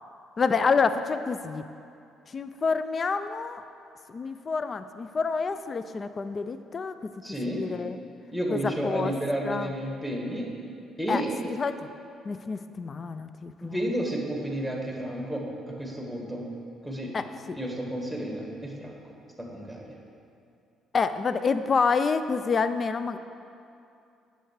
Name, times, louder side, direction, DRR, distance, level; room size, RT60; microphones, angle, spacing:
voice 1, 0.4-1.6 2.3-3.6 4.1-7.1 7.5-8.0 8.5-9.1 9.4-9.7 11.1-11.2 11.5-11.9 12.3-13.8 17.1-17.6 20.9-23.2, left 5 dB, 40° left, 11 dB, 0.3 m, -28 dB
voice 2, 7.2-7.6 8.3-10.5 11.0-11.3 13.6-16.5 16.8-17.1 17.5-19.1 19.4-20.0, equal, 5° left, -1 dB, 1.7 m, -31 dB
9.0 x 6.6 x 4.7 m, 2.6 s
cardioid pair, 90°, 0 cm